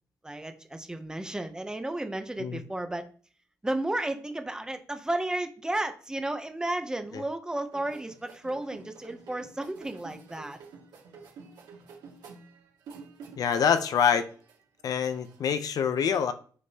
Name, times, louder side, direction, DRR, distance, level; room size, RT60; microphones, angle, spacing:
voice 1, 0.2-3.1 3.6-10.6, right 1 dB, 10° right, 7 dB, 0.7 m, -33 dB
sound 1, 7.7-13.9 14.2-15.5, right 5 dB, 85° right, 2.0 m, -49 dB
voice 2, 13.4-14.3 14.8-16.3, left 7 dB, 60° left, 10 dB, 0.6 m, -25 dB
6.5 x 5.2 x 2.8 m, 0.42 s
cardioid pair, 120°, 7 cm